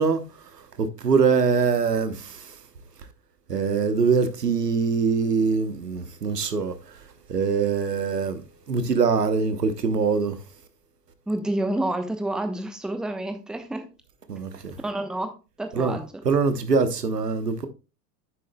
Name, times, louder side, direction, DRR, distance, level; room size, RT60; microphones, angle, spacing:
voice 1, 0.0-2.6 3.5-7.0 7.3-10.4 14.3-14.8 15.7-16.0 16.2-17.7, right 5 dB, 75° right, 1.2 m, -23 dB
voice 2, 11.3-13.8 14.8-16.1, right 1 dB, ahead, 0.9 m, -29 dB
10.0 x 7.4 x 2.2 m
figure-of-eight pair, 85°, 48 cm